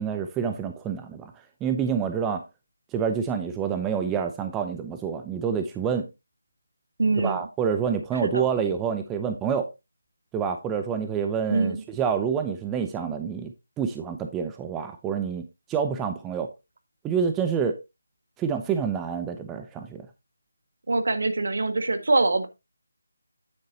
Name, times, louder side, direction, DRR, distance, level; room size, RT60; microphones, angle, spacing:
voice 1, 0.0-1.3 1.6-2.4 2.9-6.1 7.2-9.7 10.3-15.4 15.7-16.5 17.0-17.8 18.4-20.0, right 7 dB, 10° right, 0.6 m, -27 dB
voice 2, 7.0-7.4 8.2-8.5 11.5-11.8 20.9-22.5, right 3 dB, 60° right, 1.6 m, -24 dB
9.5 x 7.8 x 2.8 m
figure-of-eight pair, 160°, 0 cm